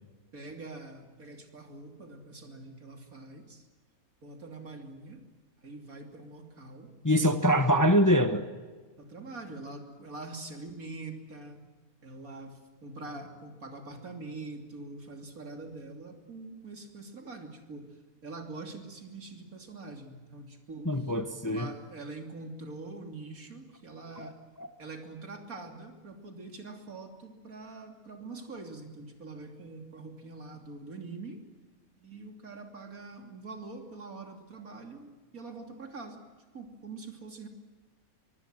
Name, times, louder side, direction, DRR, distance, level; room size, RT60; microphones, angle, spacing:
voice 1, 0.3-3.7 4.2-5.2 5.6-6.9 9.0-11.6 12.0-17.9 18.2-21.0 21.4-24.4 24.8-31.4 32.0-36.2 36.5-37.5, right 3 dB, 75° right, 4 dB, 3.5 m, -44 dB
voice 2, 7.0-8.4 20.8-21.7 24.2-24.3 24.6-24.7, equal, 15° left, 8 dB, 1.1 m, -24 dB
25.0 x 23.5 x 7.7 m, 1.4 s
omnidirectional pair, 1.5 m